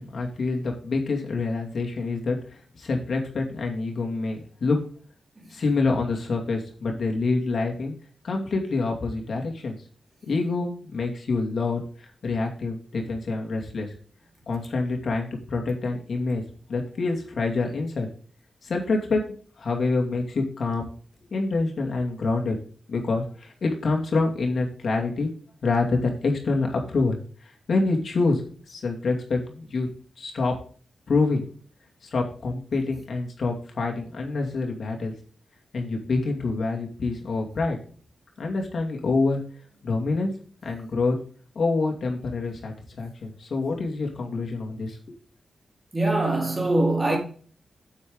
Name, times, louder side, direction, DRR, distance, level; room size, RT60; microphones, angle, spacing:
voice 1, 0.0-4.8 5.5-7.9 8.2-9.7 10.2-13.9 14.5-16.4 16.7-18.1 18.6-19.2 19.6-20.9 21.3-22.6 22.9-25.3 25.6-28.4 28.7-29.9 30.2-30.5 31.1-31.5 32.0-35.1 35.7-37.8 38.4-39.4 39.8-40.3 40.6-41.2 41.5-45.2, left 3 dB, 60° left, 2.4 m, -26 dB
voice 2, 45.9-47.2, right 2 dB, 30° right, 4.1 m, -23 dB
8.4 x 8.3 x 3.8 m
cardioid pair, 85°, 0 cm